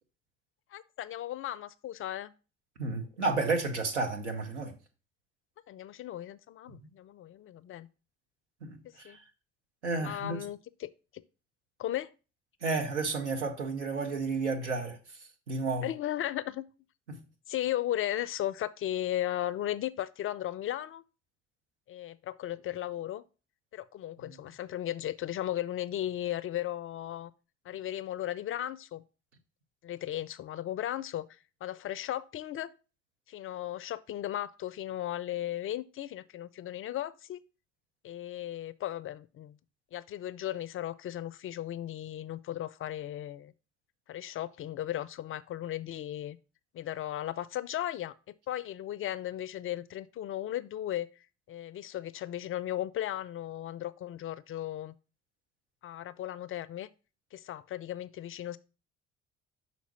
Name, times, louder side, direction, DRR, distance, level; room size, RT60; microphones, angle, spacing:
voice 1, 0.7-2.3 5.7-7.9 8.8-9.2 10.0-11.2 11.8-12.1 15.8-16.6 17.5-21.0 21.9-23.2 23.7-27.3 27.6-29.0 29.8-32.7 33.3-37.4 38.0-39.6 39.9-43.5 44.1-46.4 46.7-48.1 48.5-54.9 55.8-56.9 57.3-58.6, left 12 dB, 40° left, 0.4 m, -36 dB
voice 2, 2.8-4.7 8.6-9.2 9.8-10.4 12.6-15.2 15.5-15.9 17.1-17.2 24.2-24.4, right 3 dB, 85° right, 0.9 m, -32 dB
5.8 x 4.1 x 5.8 m
figure-of-eight pair, 45°, 34 cm